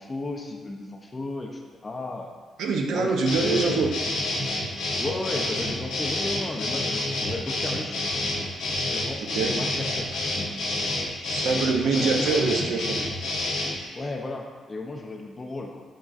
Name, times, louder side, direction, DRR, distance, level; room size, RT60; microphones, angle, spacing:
voice 1, 0.0-2.3 2.9-4.0 5.0-8.1 8.9-10.1 11.9-12.8 13.9-15.8, left 2 dB, 20° left, 1 dB, 0.3 m, -34 dB
voice 2, 2.6-3.9 9.3-9.5 11.2-12.9, right 4 dB, 80° right, 2 dB, 0.4 m, -24 dB
sound 1, 3.3-13.8, left 2 dB, 85° left, 0.7 m, -28 dB
6.2 x 2.4 x 2.3 m, 1.4 s
cardioid pair, 180°, 0 cm